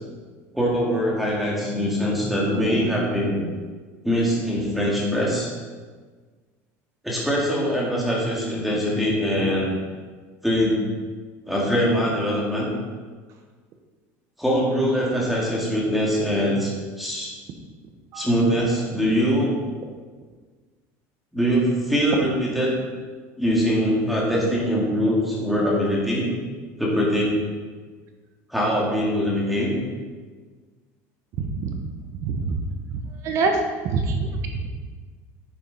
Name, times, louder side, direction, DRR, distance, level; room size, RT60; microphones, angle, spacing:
voice 1, 0.5-3.4 4.0-5.5 7.0-9.7 10.4-10.8 11.5-12.7 14.4-17.3 18.1-19.5 21.3-22.7 23.4-26.3 26.8-27.3 28.5-29.7, equal, ahead, -5 dB, 2.1 m, -22 dB
voice 2, 32.2-32.6 33.2-33.5 33.8-34.7, right 4 dB, 45° right, 4 dB, 1.0 m, -25 dB
9.7 x 7.5 x 4.1 m, 1.4 s
cardioid pair, 165°, 7 cm